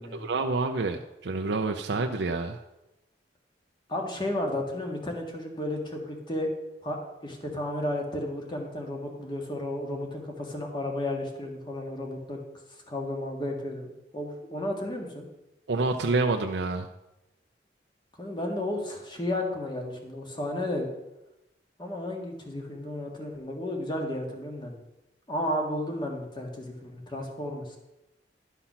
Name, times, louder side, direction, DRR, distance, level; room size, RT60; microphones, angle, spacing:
voice 1, 0.1-2.6 15.7-16.9, right 3 dB, 85° right, 4 dB, 0.6 m, -28 dB
voice 2, 3.9-6.5 6.8-12.4 12.9-13.9 14.1-15.3 18.2-20.9 21.8-24.8 25.3-27.8, left 1 dB, 25° left, 1 dB, 1.7 m, -33 dB
11.5 x 5.8 x 5.7 m, 0.93 s
head